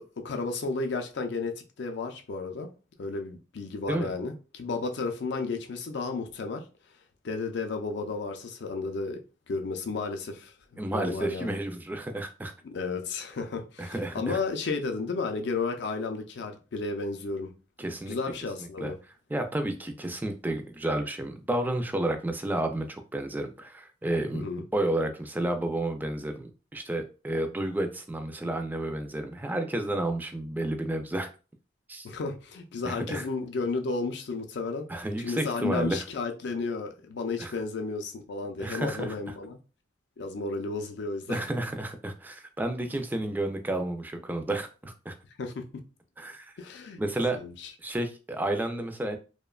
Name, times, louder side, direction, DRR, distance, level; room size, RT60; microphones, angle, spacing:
voice 1, 0.0-2.7 3.0-6.6 7.2-11.6 12.6-17.5 18.1-19.0 24.3-24.6 32.0-39.6 40.2-41.4 45.4-45.6 46.6-47.0 47.3-47.7, left 4 dB, 70° left, 0.4 m, -33 dB
voice 2, 10.8-12.5 13.8-14.4 17.8-18.2 18.8-18.9 19.3-24.5 24.7-31.3 31.9-32.1 32.8-33.3 34.9-36.0 37.4-37.5 38.6-39.2 41.3-45.2 46.2-46.5 47.0-47.4 47.8-49.2, right 1 dB, 10° right, 0.3 m, -31 dB
2.8 x 2.1 x 2.3 m
head